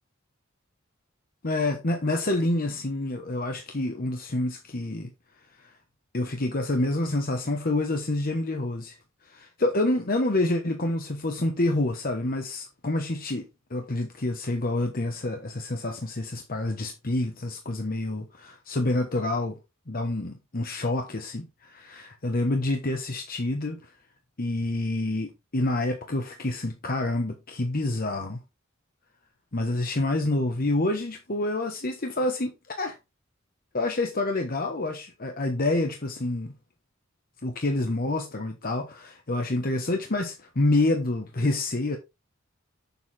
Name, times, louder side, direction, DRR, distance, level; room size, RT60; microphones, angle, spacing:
voice 1, 1.4-5.1 5.6-5.7 6.1-19.6 19.9-23.9 24.4-28.4 29.5-33.0 33.7-36.5 37.4-42.0, left 2 dB, 45° left, 1.2 m, -28 dB
8.1 x 7.1 x 3.7 m
head